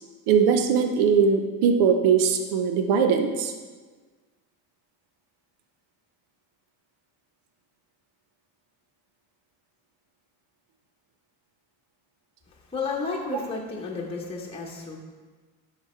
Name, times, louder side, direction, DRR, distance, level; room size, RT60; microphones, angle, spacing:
voice 1, 0.3-3.5, right 6 dB, 80° right, 6 dB, 0.8 m, -21 dB
voice 2, 12.7-15.0, left 4 dB, 15° left, -3 dB, 1.1 m, -32 dB
10.5 x 4.2 x 4.4 m, 1.4 s
cardioid pair, 120°, 40 cm